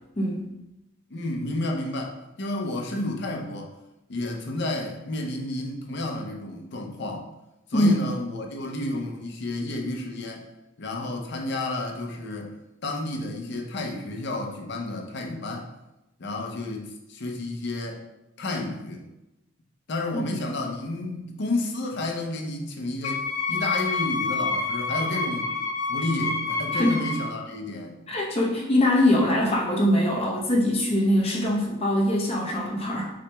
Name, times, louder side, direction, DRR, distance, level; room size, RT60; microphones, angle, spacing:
voice 1, 1.1-3.7 4.1-7.2 7.7-10.4 10.8-12.5 12.8-15.7 16.2-18.0 18.4-19.0 19.9-25.5 25.9-28.0, left 2 dB, 60° left, 1 dB, 0.6 m, -31 dB
Wind instrument woodwind instrument, 23.0-27.3, left 4 dB, 85° left, 1.2 m, -28 dB
voice 2, 28.1-33.1, left 1 dB, 30° left, -3 dB, 0.9 m, -22 dB
6.0 x 2.9 x 2.3 m, 0.94 s
head